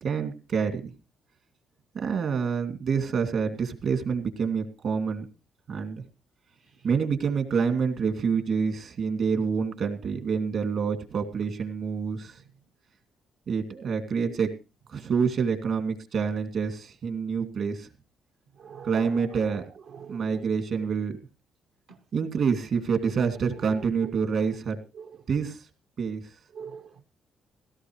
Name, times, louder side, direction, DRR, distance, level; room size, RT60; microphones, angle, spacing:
voice 1, 0.0-0.9 1.9-5.3 5.7-6.0 6.8-12.4 13.5-14.5 14.9-17.9 18.8-19.6 20.1-21.2 22.1-24.8 25.3-25.7 26.0-26.2, right 6 dB, 65° right, 2.5 m, -27 dB
voice 2, 18.6-20.5 21.9-22.0 23.5-23.8 24.9-25.2 26.5-27.0, right 6 dB, 80° right, 1.2 m, -44 dB
16.5 x 14.5 x 3.2 m
cardioid pair, 90°, 0 cm